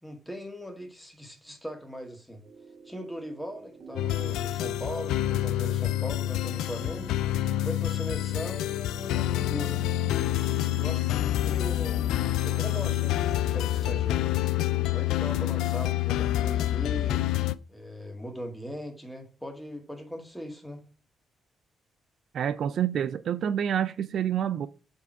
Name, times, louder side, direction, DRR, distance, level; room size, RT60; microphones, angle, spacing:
voice 1, 0.0-2.4 2.8-7.1 7.6-9.8 10.8-14.2 14.9-17.2 17.7-20.8, equal, 5° left, 1.9 m, -39 dB
sound 1, 2.4-15.7, right 5 dB, 45° right, 2.2 m, -49 dB
sound 2, 4.0-17.6, left 14 dB, 90° left, 0.3 m, -27 dB
voice 2, 22.3-24.7, right 9 dB, 65° right, 0.3 m, -28 dB
7.0 x 3.6 x 4.5 m
cardioid pair, 90°, 0 cm